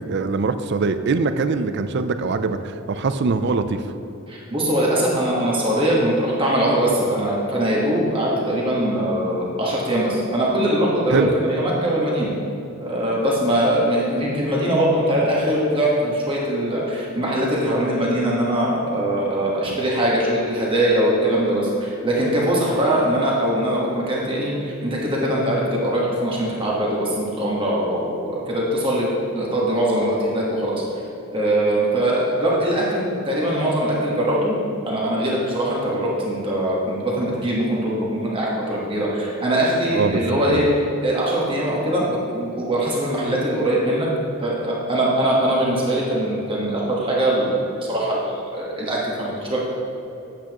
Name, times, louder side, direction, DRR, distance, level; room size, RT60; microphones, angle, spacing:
voice 1, 0.0-3.8 11.1-11.3 19.7-19.8 39.9-40.7, right 4 dB, 50° right, 10 dB, 0.4 m, -23 dB
voice 2, 4.3-12.3 12.8-30.8 31.3-40.7 41.0-44.1 44.4-49.6, right 1 dB, 25° right, -5 dB, 1.3 m, -22 dB
8.7 x 8.2 x 3.0 m, 2.7 s
head